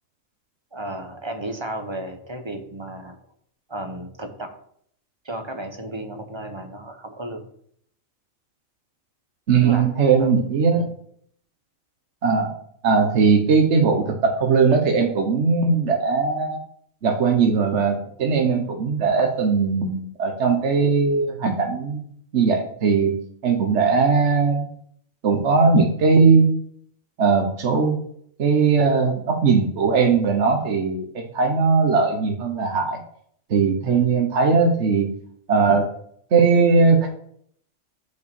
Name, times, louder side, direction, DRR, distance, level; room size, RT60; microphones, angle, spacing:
voice 1, 0.7-3.2 3.7-4.6 5.2-7.4 9.6-9.9 10.2-10.3 10.7-10.9 33.8-34.2, right 1 dB, 25° right, 6 dB, 0.9 m, -33 dB
voice 2, 9.5-10.9 12.2-12.5 12.8-16.6 17.0-22.0 22.3-23.1 23.4-24.7 25.2-26.5 27.2-28.0 28.4-33.0 33.5-35.1 35.5-35.9 36.3-37.1, right 5 dB, 60° right, 2 dB, 1.3 m, -19 dB
6.5 x 5.7 x 6.9 m, 0.65 s
omnidirectional pair, 1.4 m